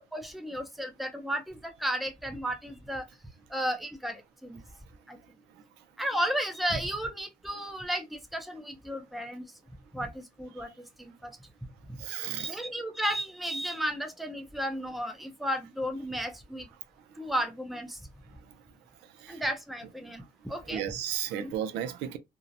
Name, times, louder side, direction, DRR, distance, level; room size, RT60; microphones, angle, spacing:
voice 1, 0.0-3.0 3.5-4.6 5.1-5.2 6.0-9.5 9.9-10.7 11.0-11.3 12.4-16.7 17.2-18.0 19.3-20.8 21.4-21.5, equal, ahead, 0.5 m, -33 dB
voice 2, 12.0-12.7 17.1-17.2 18.4-18.6 19.0-19.4 20.0-20.1 20.6-22.2, right 10 dB, 90° right, 0.4 m, -35 dB
2.6 x 2.0 x 2.5 m
cardioid pair, 110°, 17 cm